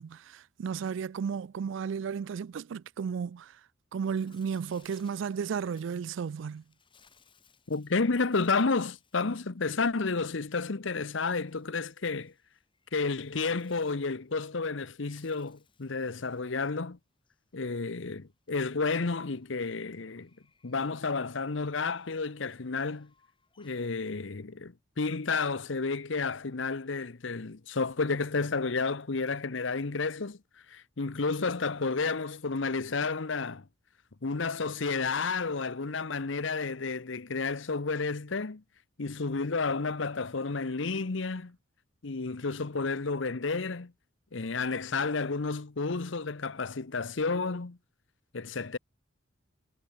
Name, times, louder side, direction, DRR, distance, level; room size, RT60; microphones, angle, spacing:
voice 1, 0.0-3.6 3.9-6.6, right 6 dB, 65° right, 0.3 m, -34 dB
Bird, 4.0-23.9, left 6 dB, 25° left, 6.9 m, -67 dB
voice 2, 7.7-12.3 12.9-17.0 17.5-20.3 20.6-23.1 23.6-30.4 30.7-33.6 34.2-38.6 39.0-41.6 42.0-43.9 44.3-47.8 48.3-48.8, left 4 dB, 65° left, 0.9 m, -31 dB
head